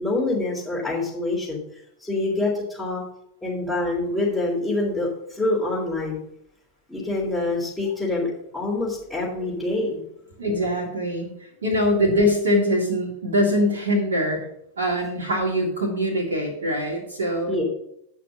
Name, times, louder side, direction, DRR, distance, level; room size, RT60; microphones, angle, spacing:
voice 1, 0.0-1.6 2.0-3.0 3.4-6.2 6.9-10.0 17.5-17.6, left 2 dB, 10° left, -9 dB, 3.5 m, -26 dB
voice 2, 10.4-11.3 11.6-14.4 14.8-17.6, equal, 70° right, -1 dB, 1.8 m, -23 dB
9.2 x 5.9 x 6.3 m, 0.75 s
figure-of-eight pair, 90°, 0 cm